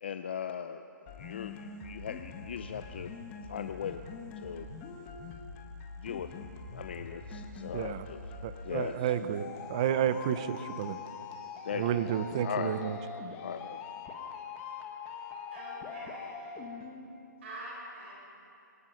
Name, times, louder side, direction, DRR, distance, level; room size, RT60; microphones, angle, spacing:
voice 1, 0.0-0.8 1.1-3.1 3.5-4.1 4.4-4.7 6.0-6.4 6.7-8.2 8.6-9.1 11.6-12.1 12.4-12.9 13.4-13.8, left 8 dB, 35° left, 9 dB, 0.5 m, -39 dB
sound 1, 1.1-17.1, left 5 dB, 15° left, 1.0 m, -43 dB
voice 2, 7.7-8.1 8.4-11.0 11.7-13.0, right 10 dB, 20° right, 13 dB, 0.5 m, -31 dB
voice 3, 15.5-16.6 17.4-18.3, right 1 dB, 35° right, -4 dB, 4.9 m, -45 dB
26.5 x 18.0 x 5.8 m, 2.7 s
hypercardioid pair, 175°, 10 cm